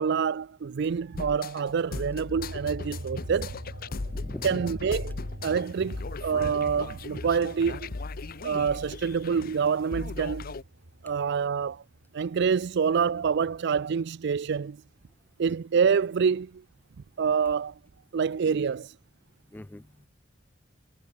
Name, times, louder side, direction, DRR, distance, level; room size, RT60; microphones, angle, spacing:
voice 1, 0.0-3.6 4.4-5.2 5.4-7.9 8.4-10.5 11.0-11.8 12.1-14.8 15.4-16.6 17.2-17.7 18.1-18.9, right 6 dB, 60° right, 0.4 m, -26 dB
sound 1, 1.2-10.6, left 3 dB, 50° left, 0.8 m, -38 dB
sound 2, 2.3-13.2 13.6-15.1, right 1 dB, 80° right, 3.3 m, -45 dB
voice 2, 4.1-4.6 19.5-20.1, left 1 dB, 10° left, 0.3 m, -40 dB
head